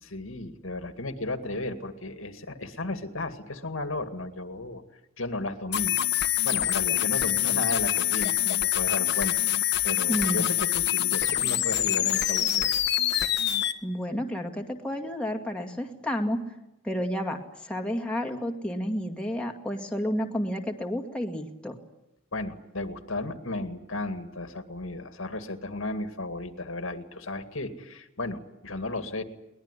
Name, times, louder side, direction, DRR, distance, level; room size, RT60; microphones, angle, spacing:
voice 1, 0.0-4.8 5.2-6.0 6.4-9.5 9.8-12.7 22.3-29.2, left 2 dB, 75° left, 8 dB, 2.1 m, -34 dB
sound 1, 5.7-13.7, left 13 dB, 55° left, 1.4 m, -25 dB
voice 2, 10.1-10.5 13.8-16.4 16.8-21.8, equal, 5° left, 2 dB, 2.1 m, -31 dB
22.5 x 20.5 x 9.9 m, 0.87 s
head